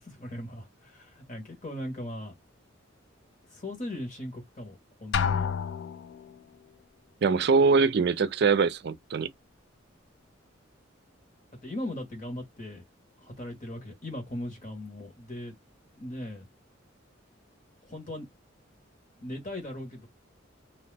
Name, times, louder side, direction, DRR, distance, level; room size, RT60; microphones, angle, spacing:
voice 1, 0.0-2.3 3.5-5.5 11.6-12.8 13.2-15.5 16.0-16.4 17.8-18.3 19.2-20.1, left 1 dB, 40° left, 1.4 m, -38 dB
Drum, 5.1-6.3, left 6 dB, 60° left, 0.3 m, -29 dB
voice 2, 7.2-9.3, right 4 dB, 55° right, 0.4 m, -23 dB
2.8 x 2.1 x 3.3 m
head